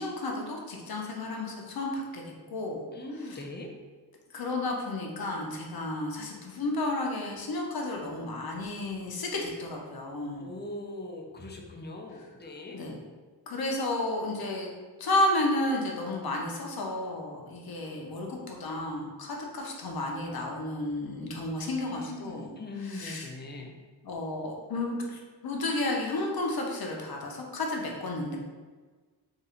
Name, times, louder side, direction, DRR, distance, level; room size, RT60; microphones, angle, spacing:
voice 1, 0.0-2.2 2.5-2.9 3.2-3.4 4.3-10.5 12.7-13.0 13.5-14.7 15.0-22.5 22.8-23.3 24.0-28.4, left 2 dB, 60° left, 0 dB, 0.8 m, -32 dB
voice 2, 2.9-3.7 10.4-12.8 21.6-23.7, left 2 dB, 25° left, 1 dB, 0.5 m, -40 dB
3.8 x 2.6 x 4.3 m, 1.4 s
wide cardioid pair, 165°, 40 cm